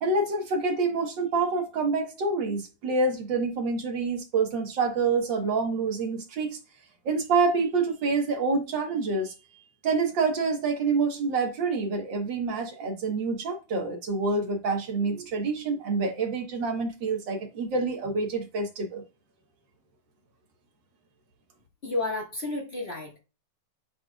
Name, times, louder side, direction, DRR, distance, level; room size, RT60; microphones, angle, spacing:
voice 1, 0.0-6.6 7.0-9.3 9.8-19.0, right 4 dB, 60° right, 1.2 m, -27 dB
voice 2, 21.8-23.2, left 2 dB, 50° left, 0.7 m, -31 dB
10.5 x 4.2 x 2.3 m
omnidirectional pair, 3.8 m